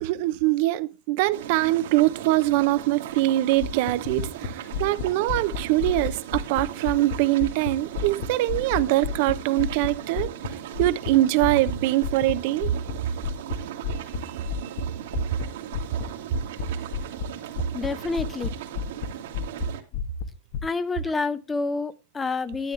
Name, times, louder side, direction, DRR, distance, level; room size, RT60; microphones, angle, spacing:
voice 1, 0.0-10.3 10.8-12.7 14.2-14.3, right 16 dB, 60° right, 0.7 m, -23 dB
sound 1, 1.3-19.8, right 10 dB, 80° right, 2.1 m, -38 dB
sound 2, 3.6-7.7 7.9-11.1 11.4-11.7 12.0-12.3 12.6-12.9 13.2-13.6 13.8-14.2 14.4-14.8 15.1-15.5 15.7-16.1 16.3-16.7 16.9-17.2 17.5-18.5 18.7-19.1 19.3-19.6 19.9-20.6, left 7 dB, 60° left, 1.4 m, -30 dB
voice 2, 17.7-18.5 20.6-22.7, left 4 dB, 15° left, 0.8 m, -28 dB
11.0 x 9.6 x 3.3 m
supercardioid pair, 130°, 0 cm